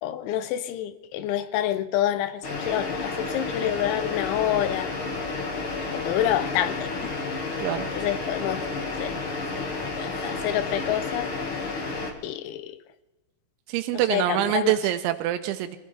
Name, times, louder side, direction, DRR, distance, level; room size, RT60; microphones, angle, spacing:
voice 1, 0.0-5.0 5.9-7.2 7.9-9.2 9.9-11.3 12.2-12.8 14.1-14.8, left 11 dB, 85° left, 3.2 m, -28 dB
sound 1, 2.4-12.1, left 3 dB, 55° left, 1.4 m, -31 dB
voice 2, 13.7-15.8, right 13 dB, 85° right, 3.0 m, -25 dB
25.5 x 16.0 x 3.4 m
omnidirectional pair, 5.3 m